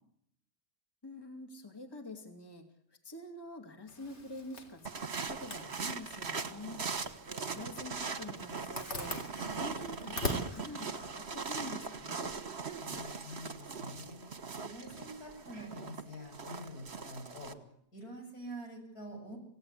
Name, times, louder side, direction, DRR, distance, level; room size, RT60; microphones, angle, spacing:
voice 1, 1.0-2.7 3.0-6.9 7.4-9.2 9.4-12.3, left 2 dB, 15° left, 4 dB, 2.6 m, -46 dB
Zipper (clothing), 3.9-12.0, left 1 dB, 45° left, 3.5 m, -44 dB
sound 1, 4.9-17.5, right 5 dB, 45° right, 1.6 m, -40 dB
voice 2, 12.8-14.2 14.6-17.6 17.9-19.4, equal, 75° left, 2 dB, 8.1 m, -46 dB
28.0 x 17.0 x 8.4 m, 0.73 s
omnidirectional pair, 1.6 m